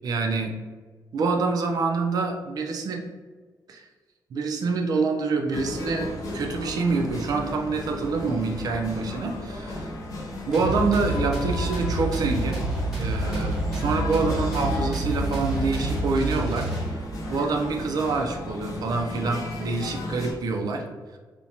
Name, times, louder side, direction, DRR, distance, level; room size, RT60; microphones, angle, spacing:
voice 1, 0.0-0.5 1.1-3.1 3.7-3.9 4.3-9.9 10.5-12.6 13.0-16.7 17.3-20.8, right 4 dB, 60° right, 2 dB, 0.4 m, -26 dB
sound 1, 5.5-20.3, left 2 dB, 50° left, 0.5 m, -35 dB
sound 2, 10.5-17.2, right 2 dB, 5° right, 0.8 m, -28 dB
2.5 x 2.1 x 2.8 m, 1.4 s
wide cardioid pair, 160°, 7 cm